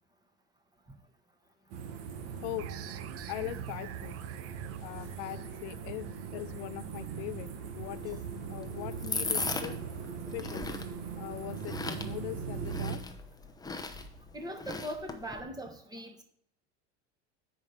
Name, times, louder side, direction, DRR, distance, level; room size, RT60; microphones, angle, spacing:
sound 1, 1.7-13.0, right 6 dB, 70° right, 1.5 m, -40 dB
sound 2, 2.6-7.9, right 12 dB, 40° right, 0.5 m, -48 dB
voice 1, 3.3-4.2 4.8-7.5 7.7-8.2 8.5-9.8 10.3-10.7 11.2-13.0, left 16 dB, 65° left, 13 dB, 0.5 m, -40 dB
sound 3, 7.9-15.4, left 3 dB, 10° left, 0.7 m, -39 dB
voice 2, 14.3-16.2, equal, 10° right, 3 dB, 1.2 m, -40 dB
7.4 x 4.8 x 5.6 m, 0.65 s
hypercardioid pair, 95°, 36 cm